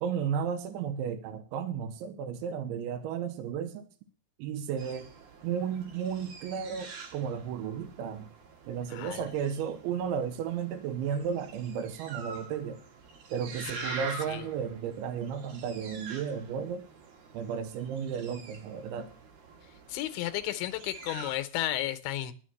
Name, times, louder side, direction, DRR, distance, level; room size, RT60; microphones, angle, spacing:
voice 1, 0.0-3.9 4.4-5.1 5.4-8.3 8.7-12.8 13.3-16.8 17.3-19.1, right 7 dB, 90° right, 8 dB, 3.3 m, -33 dB
sound 1, 4.8-21.4, right 5 dB, 60° right, 3.0 m, -46 dB
voice 2, 8.9-9.2 13.7-14.4 19.9-22.3, left 14 dB, 80° left, 9 dB, 3.0 m, -34 dB
11.0 x 7.1 x 7.6 m, 0.39 s
omnidirectional pair, 5.3 m